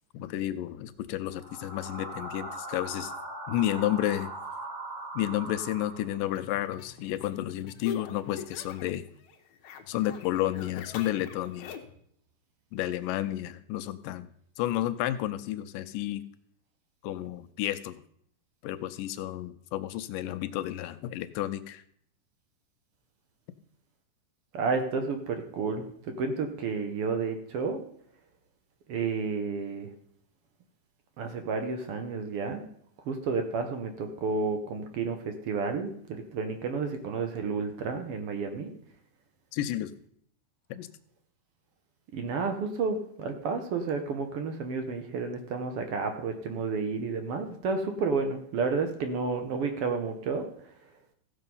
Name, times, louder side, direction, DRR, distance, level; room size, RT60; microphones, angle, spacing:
voice 1, 0.1-3.1 3.5-4.3 5.2-9.1 9.9-11.8 12.7-16.2 17.0-18.0 18.6-21.8 39.5-39.9 40.7-40.9, left 13 dB, 85° left, 12 dB, 2.3 m, -31 dB
sound 1, 1.3-6.4, right 1 dB, 45° right, 3.3 m, -40 dB
sound 2, 6.3-9.0 9.2-12.0, left 7 dB, 65° left, 2.0 m, -44 dB
voice 2, 24.5-27.8 28.9-29.9 31.2-32.6 33.0-38.7 42.1-50.7, right 4 dB, 75° right, 6 dB, 1.3 m, -31 dB
15.5 x 6.5 x 5.4 m, 0.66 s
omnidirectional pair, 3.8 m